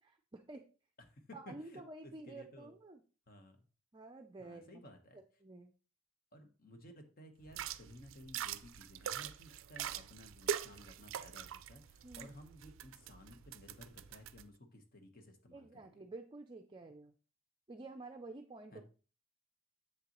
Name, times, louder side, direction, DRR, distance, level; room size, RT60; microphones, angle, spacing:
voice 1, 0.0-0.6 1.3-3.0 3.9-4.8 5.4-5.7 12.0-12.3 15.5-17.1 17.7-18.8, right 2 dB, 25° right, 5 dB, 0.4 m, -50 dB
voice 2, 1.0-2.7 3.3-3.7 4.4-5.2 6.3-15.9 18.7-18.8, left 1 dB, 50° left, 5 dB, 1.2 m, -56 dB
sound 1, 7.5-14.4, right 9 dB, 85° right, 0.4 m, -43 dB
7.6 x 6.7 x 3.0 m, 0.36 s
head